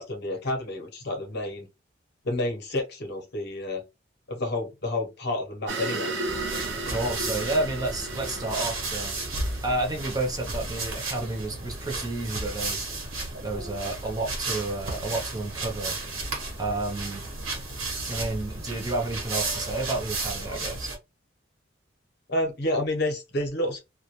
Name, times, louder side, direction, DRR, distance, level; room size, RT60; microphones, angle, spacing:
voice 1, 0.0-1.7 2.2-3.8 4.3-6.1 22.3-23.8, left 1 dB, 50° left, 0.7 m, -29 dB
sound 1, 5.7-10.3, right 2 dB, 60° right, 0.6 m, -34 dB
sound 2, 6.3-21.0, right 2 dB, 80° right, 0.9 m, -33 dB
voice 2, 6.7-9.2 9.6-12.9 13.4-16.0 16.6-17.3 18.1-20.9, right 2 dB, 20° right, 0.6 m, -30 dB
2.2 x 2.1 x 2.9 m
head